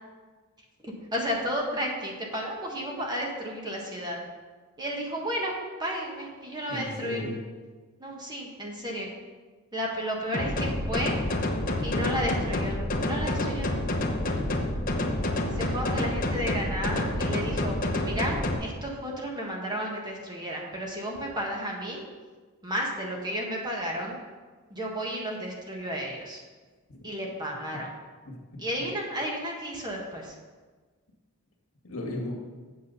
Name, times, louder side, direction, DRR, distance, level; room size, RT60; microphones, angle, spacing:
voice 1, 0.8-4.2 4.8-7.3 8.0-9.1 9.7-11.2 11.8-13.7 15.5-22.0 22.6-24.2 24.7-26.4 27.0-27.9 28.6-30.3, equal, 20° right, -1 dB, 1.4 m, -33 dB
voice 2, 6.7-7.4 11.8-12.2 14.3-14.6 26.9-27.0 28.3-28.6 31.8-32.6, left 1 dB, 70° left, 0 dB, 2.0 m, -36 dB
sound 1, 10.3-18.5, left 1 dB, 40° left, 1.0 m, -28 dB
8.4 x 7.4 x 5.5 m, 1.4 s
head